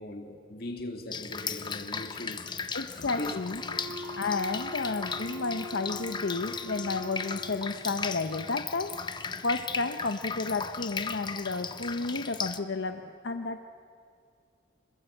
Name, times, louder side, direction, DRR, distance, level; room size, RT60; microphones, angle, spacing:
voice 1, 0.0-2.7 2.9-3.4, left 1 dB, 50° left, 2.1 m, -39 dB
Drip, 1.1-12.6, left 5 dB, 25° left, 0.7 m, -37 dB
voice 2, 2.7-3.6 4.1-13.6, left 3 dB, 75° left, 0.8 m, -32 dB
Wind instrument woodwind instrument, 3.5-7.8, equal, 5° left, 5.4 m, -42 dB
27.0 x 21.5 x 7.9 m
head